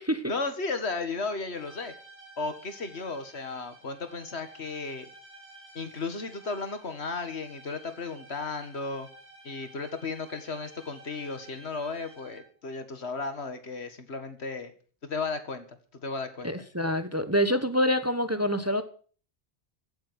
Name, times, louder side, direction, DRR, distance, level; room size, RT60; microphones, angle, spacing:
voice 1, 0.3-1.9 2.4-5.1 5.8-9.1 9.4-14.7 15.0-15.6 16.0-16.5, left 3 dB, 70° left, 2.1 m, -34 dB
sound 1, 1.5-12.6, right 2 dB, 35° right, 4.1 m, -52 dB
voice 2, 16.4-18.8, equal, 15° right, 1.2 m, -26 dB
16.0 x 8.1 x 8.1 m
omnidirectional pair, 1.1 m